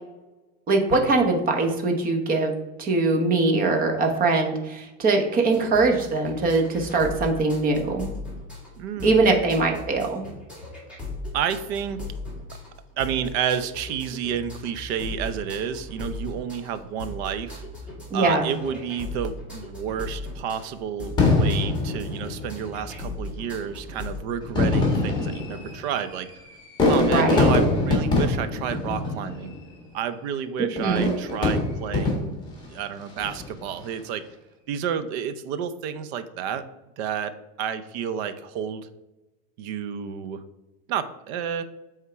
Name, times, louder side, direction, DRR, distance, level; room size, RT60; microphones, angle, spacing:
voice 1, 0.7-2.5 2.8-8.1 9.0-10.2 18.1-18.5 27.0-27.4 30.8-31.1, right 3 dB, 25° right, 3 dB, 1.0 m, -22 dB
sound 1, 5.5-24.2, left 2 dB, 5° right, 2.0 m, -38 dB
voice 2, 8.8-9.4 11.3-12.0 13.0-17.6 18.1-26.3 26.9-29.5 29.9-32.3 32.7-34.2 34.7-36.6 37.0-38.9 39.6-40.4 40.9-41.6, right 8 dB, 65° right, 11 dB, 0.7 m, -30 dB
Fireworks, 21.2-22.8 23.6-23.7 24.4-29.7 30.8-32.5 33.1-33.6, left 2 dB, 15° left, 1.7 m, -23 dB
8.3 x 3.7 x 4.6 m, 1.0 s
supercardioid pair, 160°, 34 cm